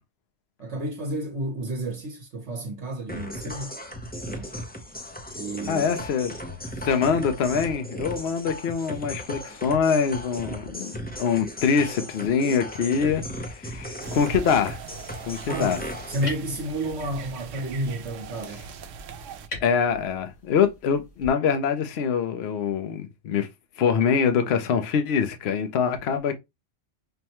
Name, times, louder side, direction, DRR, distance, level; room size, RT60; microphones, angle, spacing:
voice 1, 0.6-3.8 4.3-4.6 5.3-5.8 15.5-15.7 16.1-18.7, right 1 dB, 70° right, 1.2 m, -31 dB
sound 1, 3.1-16.3, equal, 15° left, 0.4 m, -36 dB
voice 2, 5.7-6.3 6.8-14.8 15.3-15.8 19.6-23.5 23.8-26.3, left 6 dB, 65° left, 0.9 m, -24 dB
sound 2, 13.3-21.3, left 2 dB, 80° left, 2.6 m, -45 dB
sound 3, 14.0-19.5, right 5 dB, 90° right, 0.9 m, -40 dB
5.4 x 2.1 x 2.9 m
omnidirectional pair, 1.2 m